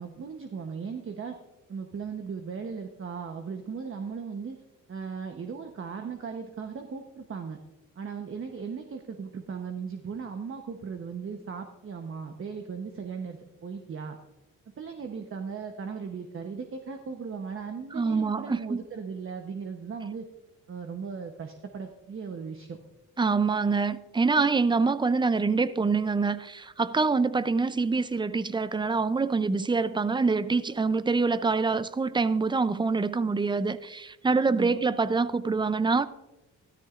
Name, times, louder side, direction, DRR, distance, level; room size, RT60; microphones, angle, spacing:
voice 1, 0.0-1.4 1.7-4.6 4.9-7.6 8.0-14.2 14.8-20.2 20.7-22.8 34.5-34.9, right 5 dB, 40° right, 1.0 m, -37 dB
voice 2, 17.9-18.8 23.2-36.1, right 4 dB, 15° right, 0.5 m, -25 dB
13.0 x 13.0 x 2.5 m
cardioid pair, 90°, 32 cm